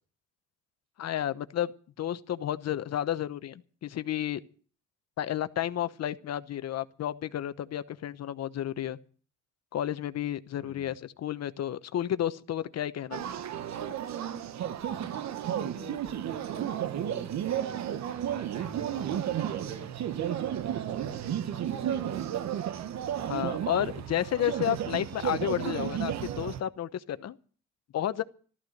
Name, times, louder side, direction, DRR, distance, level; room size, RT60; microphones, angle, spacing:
voice 1, 1.0-1.7 2.0-4.4 5.2-9.0 9.7-13.2 23.3-27.4 27.9-28.2, left 11 dB, 60° left, 1.0 m, -31 dB
voice 2, 10.6-11.0 14.9-22.2, right 5 dB, 90° right, 6.2 m, -45 dB
sound 1, 13.1-26.6, right 10 dB, 70° right, 1.0 m, -33 dB
14.0 x 14.0 x 6.5 m
cardioid pair, 105°, 29 cm